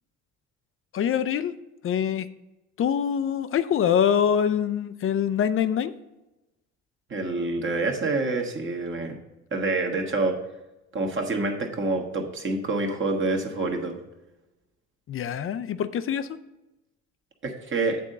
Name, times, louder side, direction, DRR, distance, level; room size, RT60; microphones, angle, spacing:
voice 1, 0.9-1.5 1.8-2.3 2.8-5.9 15.1-16.3, left 8 dB, 40° left, 12 dB, 0.5 m, -24 dB
voice 2, 7.1-9.2 9.5-10.4 10.9-14.0 17.4-18.0, right 3 dB, 35° right, 2 dB, 1.5 m, -27 dB
8.5 x 3.7 x 6.6 m, 1.0 s
supercardioid pair, 80°, 33 cm